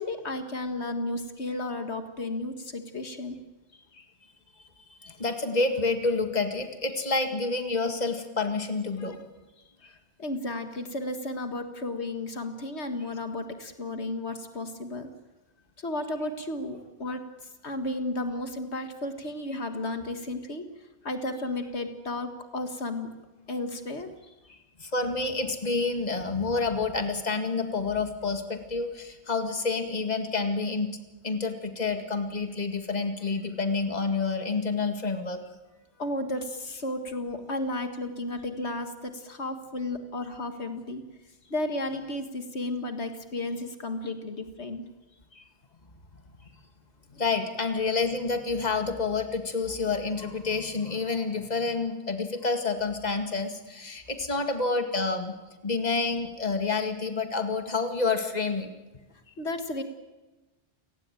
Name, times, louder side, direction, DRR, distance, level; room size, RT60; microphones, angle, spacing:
voice 1, 0.0-3.4 3.7-4.1 9.0-9.1 9.8-15.1 15.8-20.7 21.0-23.1 23.5-24.6 36.0-41.0 41.5-44.8 45.3-45.5 47.1-47.2 59.3-59.8, left 2 dB, 80° left, 7 dB, 2.1 m, -33 dB
voice 2, 4.9-9.2 24.8-30.9 31.2-35.4 46.1-46.2 47.2-55.4 55.6-58.7, left 4 dB, 40° left, 6 dB, 2.1 m, -28 dB
29.5 x 18.0 x 9.1 m, 1.1 s
omnidirectional pair, 1.1 m